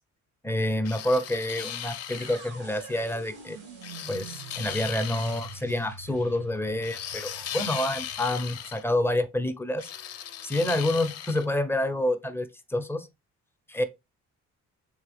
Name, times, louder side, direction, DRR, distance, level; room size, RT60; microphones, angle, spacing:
voice 1, 0.4-3.6 4.1-9.9 10.4-13.1 13.7-13.8, left 1 dB, 10° left, 0.5 m, -28 dB
sound 1, 0.9-2.5 3.8-5.6 6.8-8.8 9.8-11.5, left 10 dB, 55° left, 0.5 m, -37 dB
sound 2, 2.1-10.1, right 5 dB, 90° right, 1.7 m, -46 dB
3.7 x 3.3 x 3.3 m
cardioid pair, 90°, 30 cm